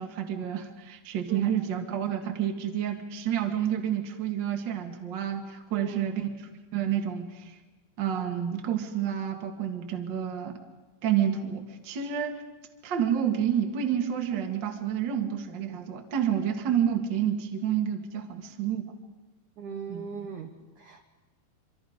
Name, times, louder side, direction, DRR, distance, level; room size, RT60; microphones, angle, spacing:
voice 1, 0.0-6.3 6.7-7.3 8.0-10.6 11.0-12.4 12.8-18.8 19.9-20.0, right 9 dB, 55° right, 3 dB, 1.2 m, -29 dB
voice 2, 5.7-6.1 19.6-21.0, right 6 dB, 80° right, 4 dB, 1.8 m, -39 dB
26.0 x 25.5 x 5.2 m, 1.2 s
omnidirectional pair, 5.4 m